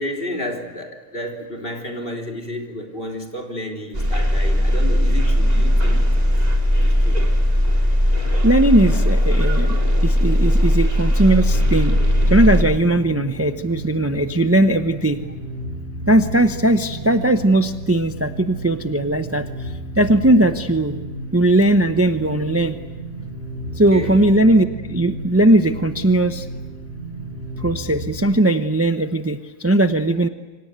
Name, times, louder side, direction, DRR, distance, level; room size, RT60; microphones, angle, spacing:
voice 1, 0.0-6.3 6.8-7.2 23.7-24.2, left 1 dB, 45° left, 1 dB, 3.8 m, -31 dB
sound 1, 3.9-12.6, equal, 30° right, 3.4 m, -18 dB
voice 2, 8.4-9.8 10.0-12.0 12.3-15.2 16.1-20.9 21.3-22.8 23.8-26.5 27.6-30.3, right 1 dB, 15° right, 8 dB, 0.8 m, -18 dB
sound 2, 11.3-28.3, right 1 dB, 55° right, 4.4 m, -33 dB
28.5 x 25.5 x 8.1 m, 1.2 s
omnidirectional pair, 1.3 m